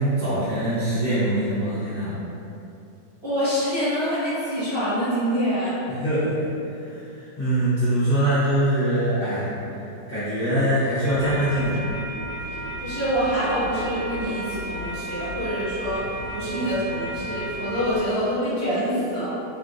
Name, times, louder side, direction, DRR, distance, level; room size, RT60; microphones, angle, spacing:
voice 1, 0.0-2.2 5.9-6.5 6.8-9.5 10.1-11.8, right 1 dB, 40° left, -15 dB, 0.9 m, -23 dB
voice 2, 3.2-5.7 12.8-19.3, equal, 50° right, -15 dB, 0.8 m, -26 dB
sound 1, 11.0-18.0, right 1 dB, 90° right, 1.6 m, -33 dB
3.4 x 2.5 x 2.4 m, 2.8 s
omnidirectional pair, 1.9 m